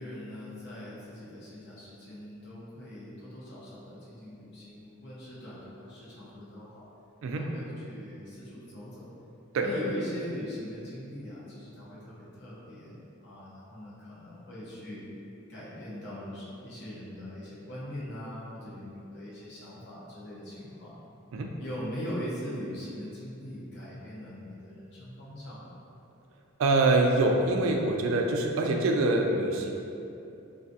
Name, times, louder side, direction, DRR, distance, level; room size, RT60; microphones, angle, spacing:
voice 1, 0.0-6.9 7.3-9.1 9.6-15.0 15.5-21.0 21.6-25.7, equal, 55° left, -8 dB, 0.8 m, -41 dB
voice 2, 7.2-7.5 9.5-9.7 21.3-21.5 26.6-29.7, right 2 dB, 75° right, 2 dB, 0.3 m, -25 dB
3.4 x 2.3 x 2.6 m, 2.8 s
head